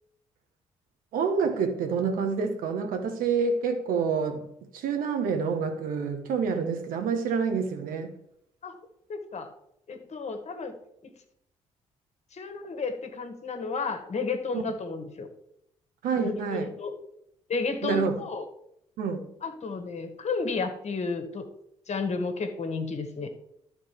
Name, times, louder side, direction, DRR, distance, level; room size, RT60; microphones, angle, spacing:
voice 1, 1.1-4.5 4.7-8.2 14.5-14.6 16.0-16.7 17.8-18.2 19.0-19.3, right 5 dB, 65° right, 1.3 m, -27 dB
voice 2, 9.1-9.5 9.9-10.7 12.3-15.3 16.2-16.3 16.8-16.9 17.5-18.4 19.4-21.5 21.9-23.3, left 4 dB, 45° left, 1.7 m, -32 dB
12.0 x 4.4 x 4.5 m
hypercardioid pair, 45°, 15 cm